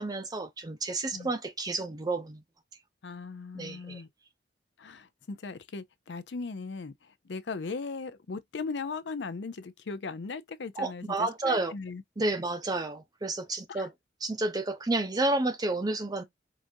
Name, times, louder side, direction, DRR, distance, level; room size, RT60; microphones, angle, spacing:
voice 1, 0.0-2.4 3.5-4.0 10.8-11.7 12.2-13.9 14.2-16.2, right 2 dB, 20° right, 0.5 m, -30 dB
voice 2, 3.0-4.1 4.8-11.0 11.4-12.0 13.7-13.9, left 4 dB, 80° left, 0.5 m, -38 dB
4.9 x 2.5 x 2.6 m
head